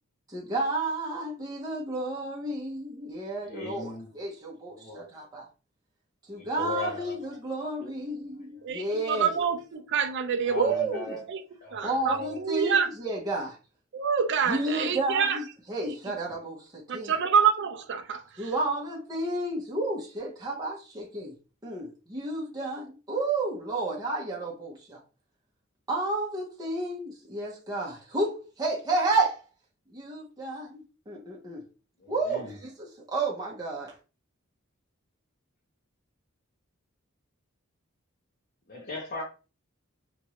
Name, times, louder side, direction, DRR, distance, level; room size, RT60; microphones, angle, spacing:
voice 1, 0.3-5.4 6.3-9.3 10.6-11.2 11.8-13.6 14.5-15.4 15.7-17.1 18.4-21.3 21.6-25.0 25.9-29.4 29.9-31.6 32.1-33.9, right 2 dB, 20° right, 0.8 m, -31 dB
voice 2, 3.4-4.1 4.6-5.0 6.3-7.3 7.6-7.7 10.5-11.2 11.6-11.8 12.0-12.4 32.0-32.6 38.7-39.2, left 2 dB, 45° left, 0.9 m, -37 dB
voice 3, 8.6-10.7 11.3-11.4 11.7-12.9 13.9-15.4 15.8-15.9 16.9-18.5, right 6 dB, 60° right, 0.5 m, -27 dB
3.0 x 2.5 x 2.9 m
head